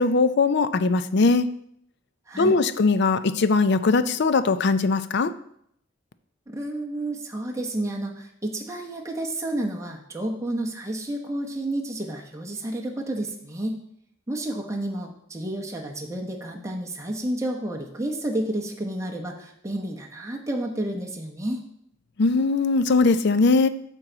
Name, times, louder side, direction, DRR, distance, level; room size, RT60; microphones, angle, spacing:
voice 1, 0.0-1.5 2.4-5.3 22.2-23.7, left 3 dB, 60° left, 12 dB, 0.5 m, -20 dB
voice 2, 2.3-2.6 6.5-13.8 14.3-21.6, right 1 dB, 15° right, -1 dB, 0.9 m, -30 dB
12.5 x 4.5 x 3.9 m, 0.71 s
head